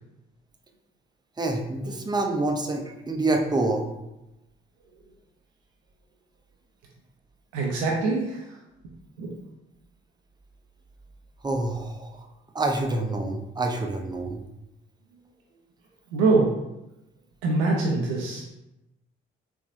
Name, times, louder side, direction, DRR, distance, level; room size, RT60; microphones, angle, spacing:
voice 1, 1.4-3.9 11.4-12.3 12.5-14.4, right 2 dB, 15° right, 3 dB, 0.5 m, -27 dB
voice 2, 7.5-8.6 9.2-9.3 16.1-16.5 17.4-18.4, right 3 dB, 80° right, -2 dB, 0.5 m, -24 dB
3.2 x 2.6 x 2.5 m, 0.92 s
hypercardioid pair, 45°, 30 cm